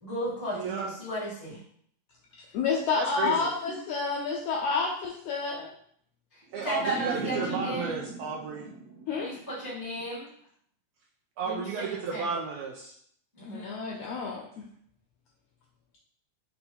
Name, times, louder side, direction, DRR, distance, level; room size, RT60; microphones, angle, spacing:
voice 1, 0.0-1.6 6.3-7.9 9.2-10.3 11.4-12.3 13.3-13.8, right 1 dB, 30° right, -7 dB, 0.3 m, -35 dB
voice 2, 0.5-0.9 3.0-3.5 6.5-8.7 11.4-12.9, right 4 dB, 80° right, -2 dB, 1.5 m, -33 dB
voice 3, 2.5-5.7 9.1-9.3 13.4-14.4, left 5 dB, 85° left, -2 dB, 1.4 m, -29 dB
sound 1, 6.5-9.7, right 3 dB, 65° right, 2.0 m, -38 dB
5.3 x 2.2 x 4.3 m, 0.65 s
omnidirectional pair, 3.5 m